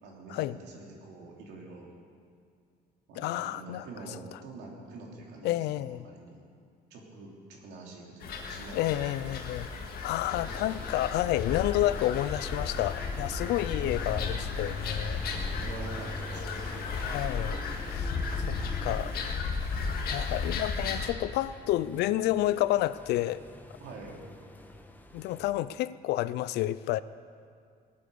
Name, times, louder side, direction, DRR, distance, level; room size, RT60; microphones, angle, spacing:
voice 1, 0.0-1.9 3.1-6.4 6.9-9.6 15.2-16.8 23.8-24.1, right 3 dB, 80° right, -1 dB, 3.3 m, -46 dB
voice 2, 3.2-3.9 5.4-6.1 8.7-9.7 10.0-15.2 17.0-17.6 17.9-18.1 18.5-19.1 20.0-23.4 25.1-27.0, left 14 dB, 80° left, 16 dB, 0.5 m, -30 dB
sound 1, 8.2-21.1, left 4 dB, 65° left, 1.9 m, -34 dB
sound 2, 10.3-25.5, left 1 dB, 10° left, 1.2 m, -46 dB
19.0 x 9.5 x 6.9 m, 2.2 s
cardioid pair, 110°, 17 cm